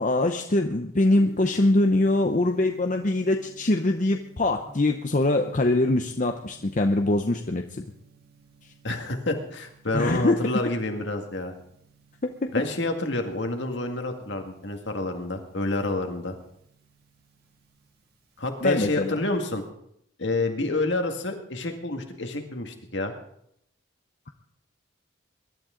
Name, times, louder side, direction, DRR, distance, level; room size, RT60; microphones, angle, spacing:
voice 1, 0.0-7.6 9.9-10.4 12.2-12.6 18.6-19.2, left 2 dB, 40° left, 5 dB, 0.7 m, -23 dB
Gong, 1.0-19.7, right 4 dB, 50° right, 2.4 m, -54 dB
voice 2, 8.8-11.5 12.5-16.4 18.4-19.6 20.2-23.1, left 2 dB, 60° left, 4 dB, 2.0 m, -28 dB
22.5 x 12.0 x 3.8 m, 0.73 s
head